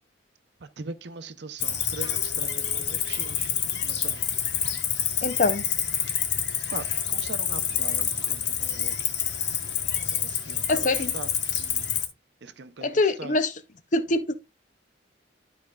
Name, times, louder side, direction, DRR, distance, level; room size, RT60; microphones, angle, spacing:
voice 1, 0.6-3.5 3.8-4.2 6.7-9.2 10.1-11.3 11.6-11.9 12.4-13.4, right 4 dB, 55° right, 0.6 m, -41 dB
Cricket, 1.6-12.1, left 8 dB, 60° left, 1.1 m, -28 dB
voice 2, 5.2-5.6 10.7-11.1 12.8-13.5 13.9-14.3, left 2 dB, 40° left, 0.5 m, -24 dB
11.5 x 5.0 x 2.3 m
head